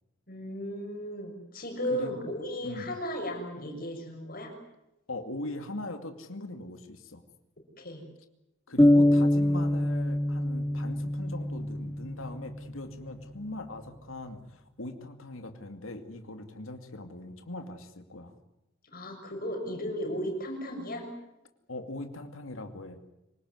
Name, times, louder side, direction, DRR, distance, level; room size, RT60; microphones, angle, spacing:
voice 1, 0.3-4.5 7.8-8.0 18.9-21.1, equal, 45° left, 4 dB, 6.8 m, -35 dB
voice 2, 5.1-7.2 8.7-18.3 21.7-23.0, left 2 dB, 85° left, 7 dB, 2.5 m, -40 dB
sound 1, 8.8-12.5, left 1 dB, 10° left, 0.8 m, -24 dB
26.0 x 19.0 x 9.7 m, 0.91 s
head